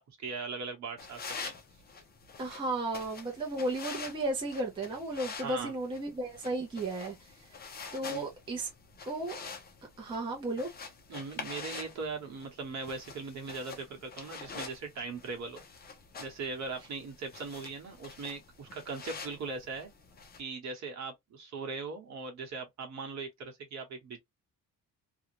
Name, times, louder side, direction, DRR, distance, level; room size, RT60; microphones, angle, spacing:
voice 1, 0.2-1.5 5.4-5.7 8.0-8.3 11.1-15.6 16.2-19.9 20.4-24.2, right 4 dB, 50° right, 1.1 m, -39 dB
sound 1, 1.0-20.4, left 5 dB, 25° left, 0.6 m, -46 dB
voice 2, 2.4-7.2 7.9-8.7 9.0-9.4 10.0-10.7, right 2 dB, 15° right, 0.6 m, -34 dB
2.6 x 2.3 x 2.9 m
cardioid pair, 175°, 35 cm